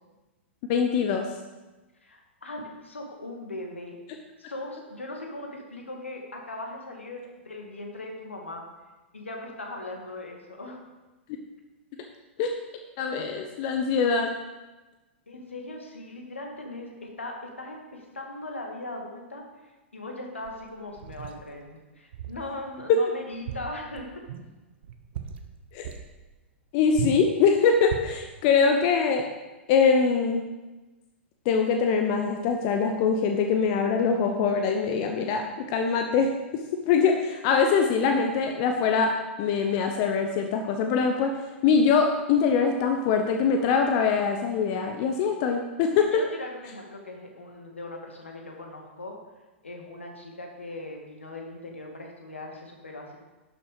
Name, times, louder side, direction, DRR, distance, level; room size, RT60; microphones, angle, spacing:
voice 1, 0.7-1.3 12.4-12.5 13.0-14.3 22.9-23.0 25.7-25.9 26.7-29.3 29.7-30.4 31.4-41.4 41.6-46.2, left 5 dB, 40° left, 4 dB, 0.9 m, -23 dB
voice 2, 2.0-4.0 4.4-8.6 9.1-10.8 15.3-24.1 46.1-49.1 49.6-53.2, left 2 dB, 80° left, 1 dB, 2.1 m, -39 dB
sound 1, 20.4-21.4 22.1-22.5 22.8-22.9 23.3-24.5 24.8-25.5 25.8-26.1 26.9-27.3 27.8-28.2, right 8 dB, 55° right, 1.0 m, -36 dB
11.5 x 6.9 x 5.0 m, 1.1 s
figure-of-eight pair, 105°, 7 cm